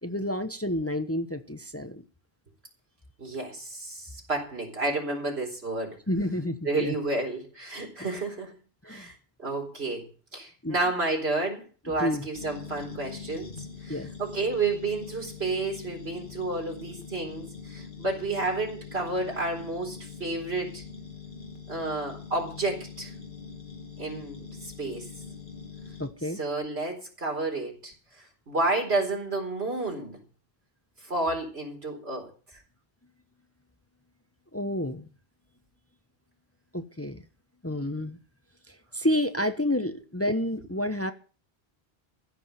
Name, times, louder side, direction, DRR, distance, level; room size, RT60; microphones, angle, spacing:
voice 1, 0.0-2.0 6.1-6.9 8.0-8.1 8.8-9.1 10.6-10.8 12.0-12.3 13.9-14.1 26.0-26.4 34.5-35.1 36.7-37.2 37.6-38.2 38.7-41.1, left 1 dB, 15° left, 9 dB, 0.9 m, -29 dB
voice 2, 3.2-6.0 6.6-8.5 8.8-10.1 10.3-20.8 21.7-23.1 24.0-25.1 26.4-30.2 31.0-32.6, right 2 dB, 90° right, 2 dB, 4.4 m, -31 dB
sound 1, 12.3-26.1, left 6 dB, 50° left, 2.4 m, -43 dB
15.0 x 6.2 x 9.2 m, 0.37 s
omnidirectional pair, 1.0 m